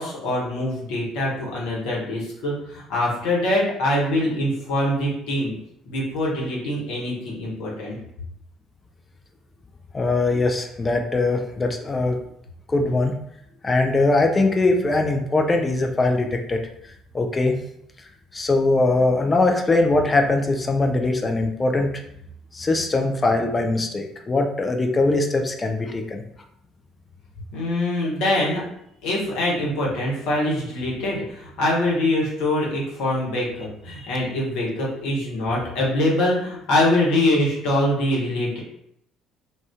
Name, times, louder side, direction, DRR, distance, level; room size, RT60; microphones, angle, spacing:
voice 1, 0.0-5.5 5.9-8.0 27.5-28.6 29.0-38.6, left 1 dB, 60° left, -4 dB, 0.9 m, -24 dB
voice 2, 9.9-12.2 12.7-13.1 13.6-16.6 17.1-17.6 18.3-21.9 22.5-26.2 34.0-34.2, left 2 dB, 25° left, 4 dB, 0.4 m, -21 dB
2.4 x 2.3 x 3.4 m, 0.74 s
figure-of-eight pair, 50°, 0 cm